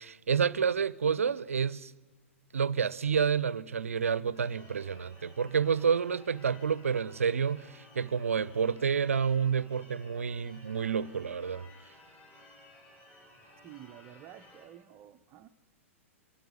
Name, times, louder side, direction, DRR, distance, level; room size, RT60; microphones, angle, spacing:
voice 1, 0.0-1.9 2.5-11.7, right 6 dB, 75° right, 0.6 m, -29 dB
Church bell / Car / Alarm, 4.3-14.7, left 1 dB, 25° left, 7.2 m, -56 dB
voice 2, 13.6-15.5, right 11 dB, 30° right, 0.6 m, -51 dB
24.0 x 14.0 x 9.5 m
figure-of-eight pair, 105°, 8 cm